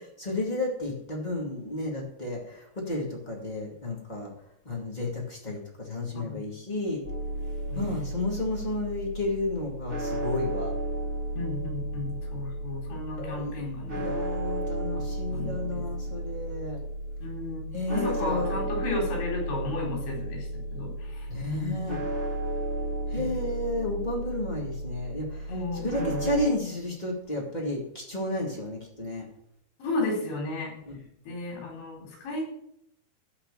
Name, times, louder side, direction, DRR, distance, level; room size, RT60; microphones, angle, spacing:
voice 1, 0.2-4.3 4.6-7.0 7.7-10.7 13.1-13.6 13.9-16.8 17.7-18.5 21.3-22.0 23.1-25.5 25.8-29.2 30.8-31.0, left 2 dB, 25° left, -2 dB, 0.9 m, -32 dB
voice 2, 6.1-6.5 7.7-8.0 11.4-14.2 14.9-15.0 15.3-15.8 17.2-17.6 17.9-21.8 23.2-23.3 25.5-26.2 29.8-30.7 31.3-32.5, left 2 dB, 85° left, -1 dB, 6.3 m, -34 dB
sound 1, 7.0-26.5, right 1 dB, 25° right, 1.4 m, -33 dB
13.5 x 4.9 x 9.0 m, 0.75 s
omnidirectional pair, 5.2 m